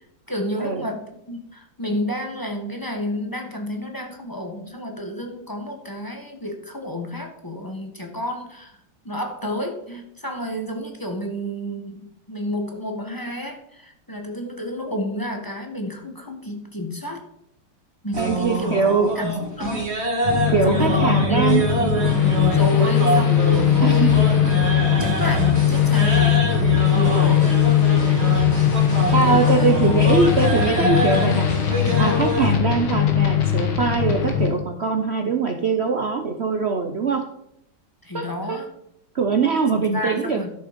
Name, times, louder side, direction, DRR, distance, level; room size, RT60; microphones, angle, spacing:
voice 1, 0.3-8.8 9.0-17.2 18.0-18.8 19.1-20.0 20.7-21.6 22.1-24.3 25.0-27.6 28.1-28.5 29.0-30.2 38.0-38.7 39.9-40.5, left 1 dB, 10° left, 3 dB, 1.1 m, -30 dB
sound 1, 18.1-32.5, right 1 dB, 30° right, 1.9 m, -25 dB
voice 2, 18.2-19.1 20.5-21.7 22.8-22.9 23.8-24.1 24.9-25.0 27.1-27.4 29.1-31.5 32.0-37.2 38.1-38.6 39.1-40.4, right 5 dB, 90° right, 4 dB, 0.5 m, -22 dB
sound 2, 20.2-34.5, left 10 dB, 70° left, 2.1 m, -20 dB
12.5 x 6.5 x 5.2 m, 0.77 s
omnidirectional pair, 2.4 m